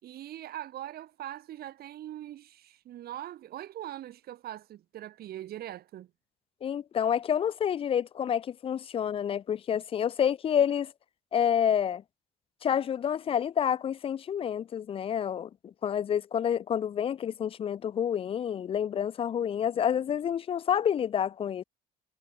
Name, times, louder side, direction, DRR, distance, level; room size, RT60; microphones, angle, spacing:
voice 1, 0.0-6.1, right 13 dB, 65° right, 4.9 m, -41 dB
voice 2, 6.6-10.9 11.3-12.0 12.6-21.6, left 9 dB, 35° left, 0.4 m, -28 dB
cardioid pair, 110°, 17 cm